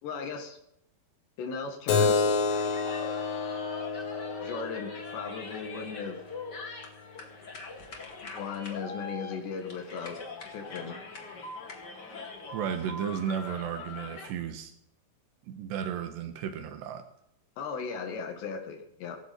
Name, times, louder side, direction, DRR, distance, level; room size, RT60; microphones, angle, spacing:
voice 1, 0.0-0.6 1.4-2.4 4.4-6.2 8.2-10.2 10.5-11.0 17.6-19.2, left 5 dB, 85° left, 4 dB, 4.3 m, -37 dB
Keyboard (musical), 1.9-7.0, left 4 dB, 60° left, 3.3 m, -30 dB
sound 1, 2.3-14.3, left 3 dB, 35° left, 2.1 m, -43 dB
voice 2, 12.5-14.7 15.5-17.0, right 8 dB, 85° right, 8 dB, 3.5 m, -34 dB
18.0 x 15.5 x 4.5 m, 0.75 s
omnidirectional pair, 4.8 m